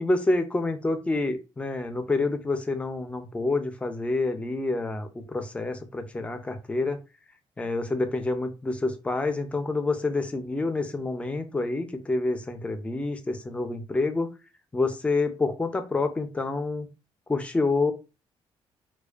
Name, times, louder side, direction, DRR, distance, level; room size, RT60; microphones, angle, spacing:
voice 1, 0.0-7.0 7.6-14.3 14.7-16.9 17.3-17.9, left 3 dB, 10° left, 7 dB, 0.4 m, -28 dB
2.4 x 2.2 x 2.3 m, 0.29 s
cardioid pair, 135°, 10 cm